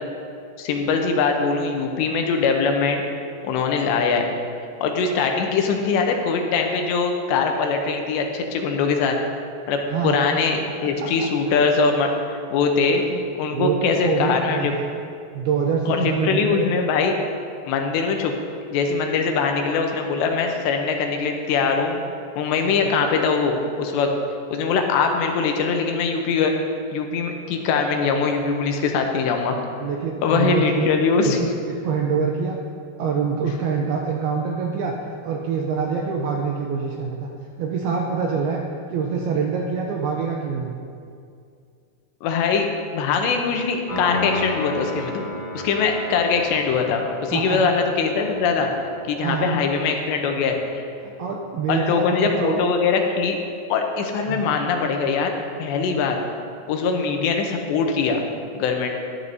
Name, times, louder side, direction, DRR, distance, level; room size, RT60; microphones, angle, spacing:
voice 1, 0.6-3.0 3.4-4.3 4.8-9.2 9.7-13.0 13.4-14.7 15.9-17.1 17.7-18.3 18.7-22.0 22.4-24.1 24.5-26.5 26.9-29.6 30.2-31.5 42.2-42.7 42.9-45.3 45.5-48.7 49.1-50.6 51.7-53.4 53.7-55.3 55.6-56.2 56.7-58.2 58.5-58.9, left 5 dB, 80° left, 3 dB, 2.9 m, -22 dB
voice 2, 9.9-10.3 11.0-11.6 13.0-13.2 13.5-14.9 15.3-16.7 22.7-22.9 29.8-30.9 31.2-32.6 33.0-35.0 35.2-37.3 37.6-38.6 38.9-40.7 47.3-47.7 48.6-48.7 49.2-49.7 51.0-52.7 54.3-54.5, right 5 dB, 85° right, 0 dB, 2.2 m, -25 dB
Piano, 43.9-50.6, left 2 dB, 65° left, 4.7 m, -34 dB
12.0 x 12.0 x 2.7 m, 2.3 s
omnidirectional pair, 5.2 m